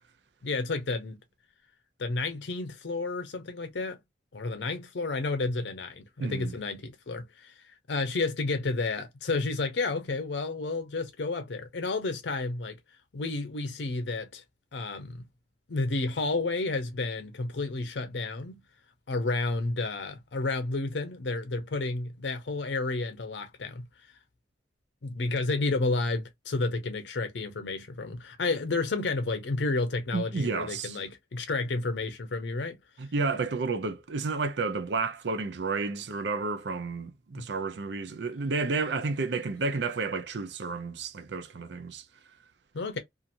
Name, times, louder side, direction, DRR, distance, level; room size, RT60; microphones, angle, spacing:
voice 1, 0.4-1.2 2.0-4.0 4.3-7.5 7.9-12.8 13.1-14.4 14.7-15.2 15.7-18.6 19.1-23.9 25.0-32.8 37.3-37.5 42.7-43.0, left 3 dB, 90° left, 0.6 m, -31 dB
voice 2, 6.2-6.5 30.1-31.0 33.0-42.0, right 4 dB, 80° right, 0.6 m, -31 dB
2.8 x 2.5 x 2.5 m
head